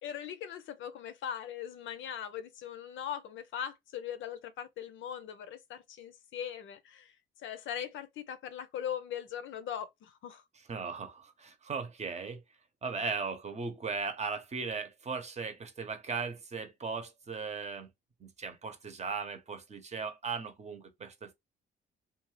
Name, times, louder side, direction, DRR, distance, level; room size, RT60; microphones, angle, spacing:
voice 1, 0.0-7.1 7.4-10.4, left 9 dB, 75° left, 0.6 m, -40 dB
voice 2, 10.7-12.4 12.8-17.9 18.2-21.3, right 5 dB, 35° right, 0.8 m, -37 dB
2.6 x 2.3 x 3.1 m
cardioid pair, 90°, 20 cm